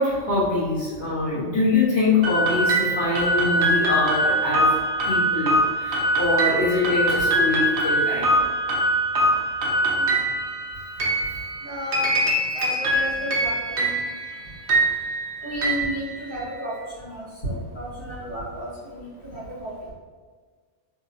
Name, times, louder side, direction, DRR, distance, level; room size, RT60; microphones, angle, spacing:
voice 1, 0.0-4.7 5.1-8.4, left 2 dB, 20° left, -12 dB, 1.4 m, -24 dB
sound 1, 2.2-16.7, right 1 dB, 55° right, 0.8 m, -23 dB
voice 2, 9.8-10.2 11.6-12.1 12.5-14.0 15.4-19.7, equal, 60° left, -11 dB, 2.0 m, -33 dB
3.6 x 2.6 x 2.8 m, 1.6 s
omnidirectional pair, 1.2 m